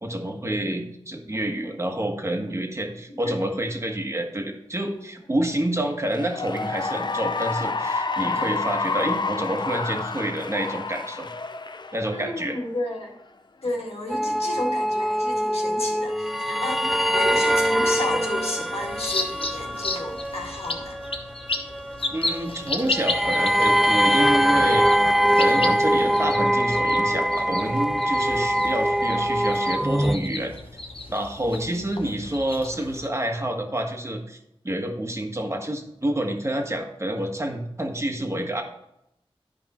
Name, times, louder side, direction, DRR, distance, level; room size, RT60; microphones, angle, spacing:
voice 1, 0.0-11.3 11.9-12.6 22.1-24.9 25.4-30.5 31.1-34.4 34.6-38.6, right 1 dB, 30° right, 3 dB, 1.5 m, -28 dB
Cheering / Applause, 6.0-12.6, left 4 dB, 45° left, 0.6 m, -29 dB
voice 2, 12.1-13.2 13.6-21.0 31.4-31.8, left 2 dB, 85° left, 0 dB, 2.0 m, -32 dB
sound 1, 14.1-30.2, equal, ahead, 0.4 m, -23 dB
sound 2, 18.8-33.1, left 2 dB, 65° left, 1.0 m, -34 dB
11.5 x 5.3 x 4.3 m, 0.81 s
wide cardioid pair, 80°, 10 cm